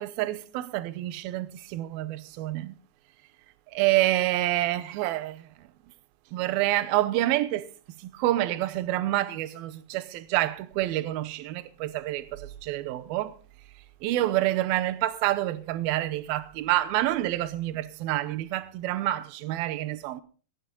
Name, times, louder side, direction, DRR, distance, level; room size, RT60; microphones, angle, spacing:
voice 1, 0.0-2.7 3.7-5.4 6.3-7.6 8.2-13.3 14.0-20.2, right 15 dB, 75° right, 2.6 m, -27 dB
17.0 x 10.0 x 5.2 m
omnidirectional pair, 4.5 m